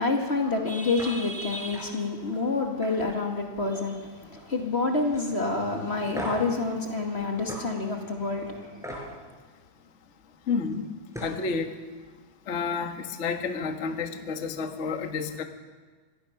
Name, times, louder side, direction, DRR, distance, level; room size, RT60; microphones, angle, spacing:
voice 1, 0.0-9.1, left 3 dB, 25° left, 2 dB, 1.6 m, -28 dB
sound 1, 1.0-1.1 1.5-1.8 2.2-2.4 2.8-4.0 4.3-4.7 5.1-5.2 6.1-6.5 7.5-7.6 8.8-9.0 10.7-10.8 11.1-11.4, equal, ahead, 5.3 m, -38 dB
voice 2, 10.5-10.9 11.2-11.7 12.5-15.4, left 5 dB, 50° left, 5 dB, 0.8 m, -30 dB
25.5 x 18.0 x 5.9 m, 1.4 s
omnidirectional pair, 3.8 m